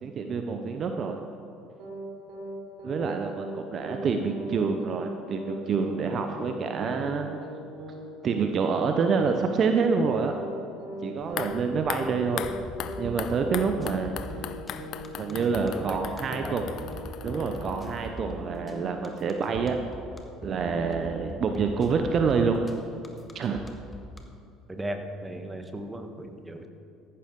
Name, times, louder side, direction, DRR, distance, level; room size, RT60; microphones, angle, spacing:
voice 1, 0.0-1.2 2.8-7.3 8.2-10.3 11.0-12.4 13.0-14.1 15.1-16.6 17.2-19.8 20.4-22.6 23.3-23.6, right 5 dB, 45° right, 5 dB, 0.8 m, -27 dB
sound 1, 1.8-2.0 2.3-2.5 2.8-3.0 3.3-3.5 3.8-4.0 4.3-4.5 4.8-5.0 5.3-5.5 5.8-6.0 6.3-6.5 6.8-7.0 7.3-7.5 7.8-8.0 8.3-8.5 8.8-9.0 9.3-9.5 9.8-10.0 10.3-10.5 10.8-11.0 11.3-11.5 11.8-12.0 12.3-12.5 12.8-13.0 13.3-13.5 13.8-14.0 14.3-14.5 14.8-15.0 15.3-15.5 15.8-16.0 16.3-16.5 16.8-17.0 17.3-17.5, right 1 dB, 65° right, 3.1 m, -40 dB
sound 2, 11.2-18.3 18.6-18.7, left 10 dB, 55° left, 0.6 m, -39 dB
sound 3, 12.4-24.2, left 3 dB, 20° left, 1.5 m, -41 dB
voice 2, 15.7-16.1 16.4-16.6 24.7-26.7, right 1 dB, 15° right, 5 dB, 1.5 m, -36 dB
14.5 x 11.5 x 3.8 m, 2.6 s
hypercardioid pair, 65°, 0 cm